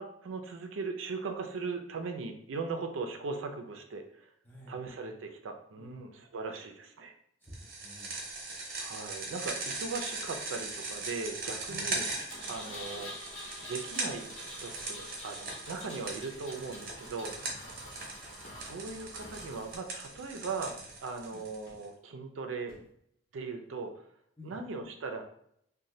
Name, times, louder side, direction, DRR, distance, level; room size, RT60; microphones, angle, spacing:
voice 1, 0.0-4.3 4.7-7.1 8.8-12.1 12.5-17.4 18.6-22.7 23.3-23.9 24.4-25.2, right 4 dB, 85° right, 5 dB, 0.4 m, -39 dB
voice 2, 4.4-4.8 5.8-6.0 7.4-8.1 11.7-11.9 17.4-17.7 21.3-21.4 24.4-24.5, left 2 dB, 10° left, -3 dB, 0.5 m, -50 dB
sound 1, 7.5-21.8, right 3 dB, 50° right, 0.7 m, -40 dB
Engine, 12.3-19.8, left 1 dB, 90° left, 0.7 m, -47 dB
sound 2, 14.8-15.0 15.4-15.5 16.7-16.9 17.2-17.5 18.4-18.7 19.2-19.5 20.1-20.4 20.9-21.1 21.7-21.9 22.7-23.0 23.6-23.7, left 1 dB, 55° left, 0.9 m, -56 dB
2.6 x 2.2 x 3.0 m, 0.69 s
head